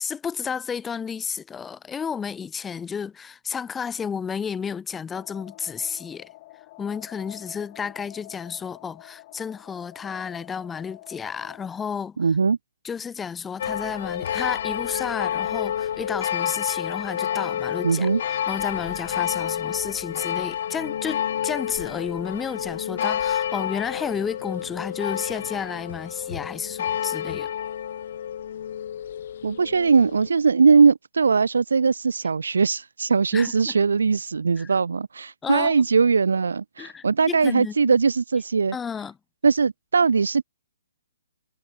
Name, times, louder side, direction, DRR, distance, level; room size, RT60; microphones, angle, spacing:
voice 1, 0.0-6.3 6.8-12.2 12.8-27.5 33.3-33.7 34.6-34.7 35.4-35.7 36.8-38.0 38.7-39.2, left 6 dB, 10° left, 0.9 m, -32 dB
sound 1, 5.1-11.7, left 18 dB, 35° left, 7.0 m, -47 dB
voice 2, 12.2-12.6 17.8-18.2 29.4-38.8 39.4-40.4, right 5 dB, 90° right, 0.4 m, -20 dB
sound 2, 13.6-30.3, left 9 dB, 55° left, 0.4 m, -29 dB
hypercardioid pair, 155°, 0 cm